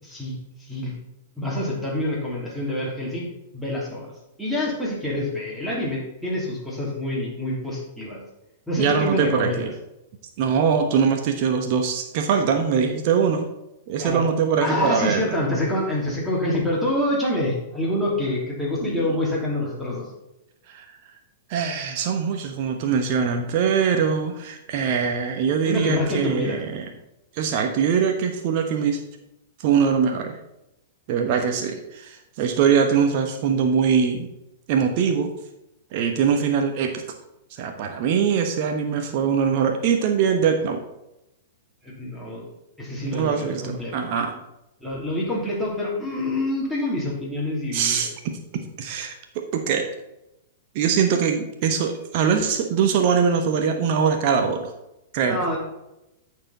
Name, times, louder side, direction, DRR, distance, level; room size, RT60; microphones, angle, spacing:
voice 1, 0.0-0.9 1.4-4.1 4.4-8.2 8.7-9.7 14.0-14.2 14.6-20.1 25.7-26.6 41.8-42.4 42.8-43.9 44.8-48.0 55.3-55.6, left 1 dB, 5° right, -4 dB, 2.9 m, -26 dB
voice 2, 8.8-9.7 10.4-13.5 13.9-15.2 18.8-18.9 20.7-20.8 21.5-26.8 27.4-29.0 29.6-30.4 31.1-34.3 34.7-35.3 35.9-37.0 37.6-40.8 43.0-44.3 47.7-48.4 48.8-49.9 50.7-54.6 55.1-55.6, right 6 dB, 40° right, 5 dB, 1.0 m, -22 dB
14.0 x 4.8 x 4.1 m, 0.90 s
figure-of-eight pair, 100°, 0 cm